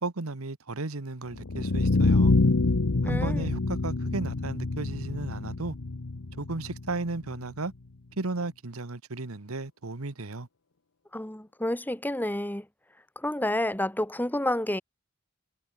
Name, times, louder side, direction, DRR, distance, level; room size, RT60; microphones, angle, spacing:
voice 1, 0.0-2.3 3.0-5.7 6.4-7.7 8.2-10.5, right 3 dB, 85° right, 1.3 m, -34 dB
sound 1, 1.3-7.4, left 3 dB, 75° left, 0.9 m, -26 dB
voice 2, 3.0-3.5 11.1-12.7 13.2-14.8, left 1 dB, 10° left, 2.0 m, -29 dB
head